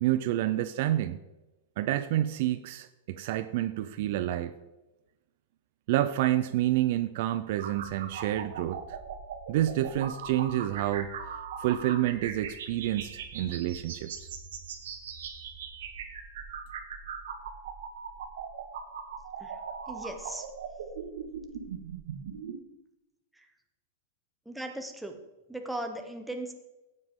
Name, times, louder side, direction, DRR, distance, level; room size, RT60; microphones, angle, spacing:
voice 1, 0.0-1.2 1.8-4.5 5.9-9.0 9.5-11.1 11.6-14.1, right 13 dB, 45° right, 0.4 m, -28 dB
sound 1, 7.6-22.6, right 6 dB, 70° right, 1.5 m, -40 dB
voice 2, 19.9-20.5 24.5-25.2 25.5-26.5, right 1 dB, ahead, 0.8 m, -37 dB
15.5 x 7.5 x 3.6 m
supercardioid pair, 175°, 0 cm